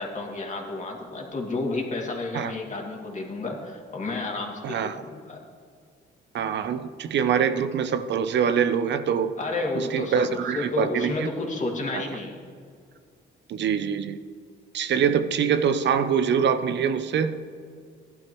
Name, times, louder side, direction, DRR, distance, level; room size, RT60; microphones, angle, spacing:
voice 1, 0.0-5.4 9.4-12.4, left 2 dB, 40° left, 0 dB, 2.4 m, -31 dB
voice 2, 4.6-5.0 6.3-9.4 9.7-11.3 11.9-12.0 13.5-14.2 14.7-17.4, right 7 dB, 65° right, 10 dB, 0.7 m, -24 dB
15.5 x 11.5 x 3.1 m, 2.2 s
cardioid pair, 90°, 20 cm